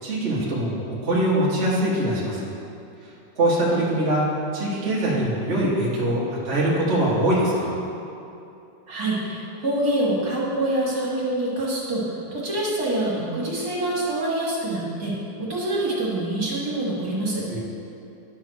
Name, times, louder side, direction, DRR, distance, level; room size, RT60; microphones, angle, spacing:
voice 1, 0.0-2.5 3.4-4.2 4.5-7.8 17.5-17.6, right 1 dB, 35° right, -8 dB, 1.6 m, -23 dB
voice 2, 8.9-17.6, right 1 dB, 55° right, -6 dB, 2.2 m, -26 dB
11.0 x 3.8 x 6.3 m, 2.7 s
omnidirectional pair, 2.1 m